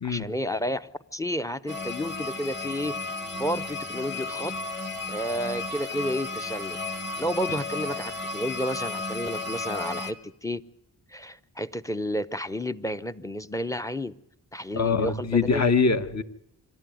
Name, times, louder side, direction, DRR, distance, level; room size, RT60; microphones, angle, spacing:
voice 1, 0.0-3.1 3.4-4.5 5.1-6.8 7.2-10.6 11.1-14.1 14.5-15.6, equal, 10° left, 11 dB, 0.8 m, -31 dB
sound 1, 1.7-10.1, left 3 dB, 25° left, 2.1 m, -33 dB
voice 2, 14.7-16.2, left 5 dB, 40° left, 9 dB, 1.4 m, -23 dB
26.0 x 12.5 x 9.3 m, 0.81 s
cardioid pair, 65°, 41 cm